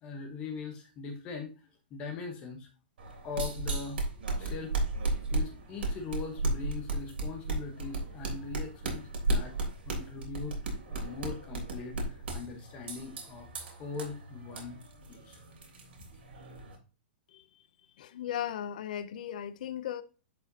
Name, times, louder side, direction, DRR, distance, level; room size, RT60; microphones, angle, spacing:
voice 1, 0.0-1.5 1.9-2.7 3.2-4.0 4.4-4.7 5.3-9.6 9.9-14.8 15.1-15.4, left 5 dB, 20° left, 1.0 m, -41 dB
sound 1, 3.0-16.8, right 2 dB, 90° right, 3.3 m, -35 dB
voice 2, 18.0-20.0, left 10 dB, 50° left, 0.6 m, -36 dB
10.5 x 5.0 x 2.8 m
hypercardioid pair, 175°, 6 cm